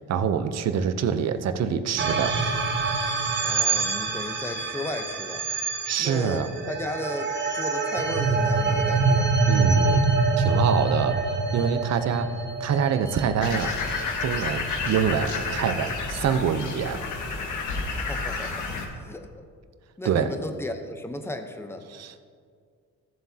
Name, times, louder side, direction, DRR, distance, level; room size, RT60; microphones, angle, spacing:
voice 1, 0.1-2.4 5.9-6.5 9.5-10.0 10.4-11.2 11.5-12.3 12.6-13.7 14.2-17.0 20.0-20.3 21.9-22.2, right 7 dB, 55° right, 10 dB, 0.7 m, -25 dB
sound 1, 2.0-14.4, right 3 dB, 35° right, 1.1 m, -25 dB
voice 2, 3.4-5.5 6.0-9.4 12.1-12.2 17.9-18.7 18.9-19.3 20.0-21.9, left 1 dB, 10° left, 6 dB, 0.8 m, -35 dB
sound 2, 13.4-18.9, left 4 dB, 70° left, 1.6 m, -30 dB
15.0 x 7.5 x 2.8 m, 2.1 s
cardioid pair, 100°, 32 cm